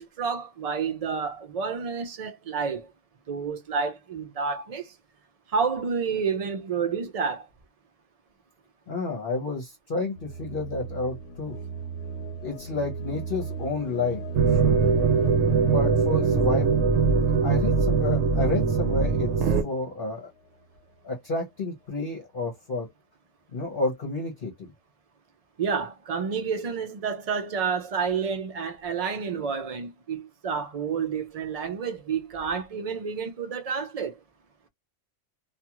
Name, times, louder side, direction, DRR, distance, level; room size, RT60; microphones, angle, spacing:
voice 1, 0.0-2.9 3.3-4.9 5.5-7.5 25.6-34.2, right 6 dB, 50° right, 0.4 m, -29 dB
voice 2, 8.9-11.6 12.4-14.2 14.5-14.8 15.6-16.8 17.4-20.3 21.0-22.9 23.5-24.5, left 3 dB, 50° left, 1.0 m, -30 dB
sound 1, 10.2-20.0, right 3 dB, 80° left, 1.0 m, -37 dB
sound 2, 14.4-19.6, right 5 dB, 70° right, 0.9 m, -22 dB
2.5 x 2.4 x 2.9 m
omnidirectional pair, 1.2 m